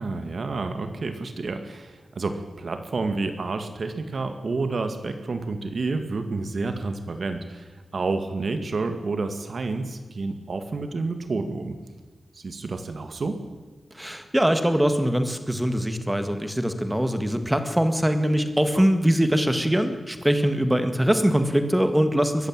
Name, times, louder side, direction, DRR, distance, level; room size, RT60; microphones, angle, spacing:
voice 1, 0.0-11.8 12.3-13.4 18.7-18.9, right 3 dB, 50° right, 8 dB, 2.0 m, -29 dB
voice 2, 13.9-22.5, equal, 5° right, 8 dB, 1.8 m, -22 dB
22.0 x 15.0 x 9.0 m, 1.4 s
wide cardioid pair, 180°, 0 cm